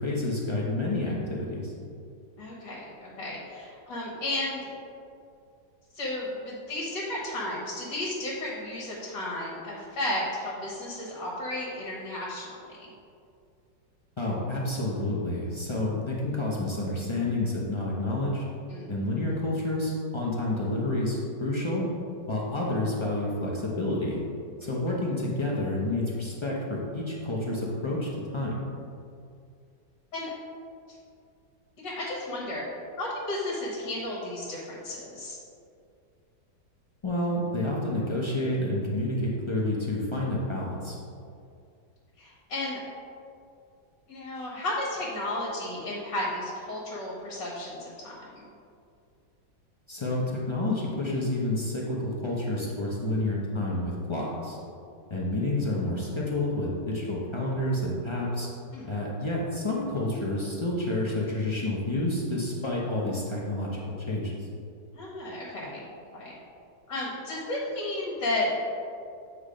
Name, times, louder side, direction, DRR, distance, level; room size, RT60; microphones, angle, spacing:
voice 1, 0.0-1.7 14.2-18.4 18.9-21.9 22.3-24.2 24.6-28.6 37.0-41.0 49.9-54.6 55.1-58.5 58.9-64.3, left 1 dB, 50° left, -4 dB, 0.3 m, -29 dB
voice 2, 2.4-4.7 5.9-12.9 18.7-18.9 19.3-19.4 24.6-24.7 30.1-30.3 30.9-31.0 31.8-32.6 33.0-35.4 42.2-42.8 44.1-48.5 58.7-58.9 65.0-66.3 66.9-68.5, left 1 dB, 70° left, -5 dB, 1.7 m, -33 dB
8.3 x 3.1 x 5.0 m, 2.4 s
omnidirectional pair, 1.9 m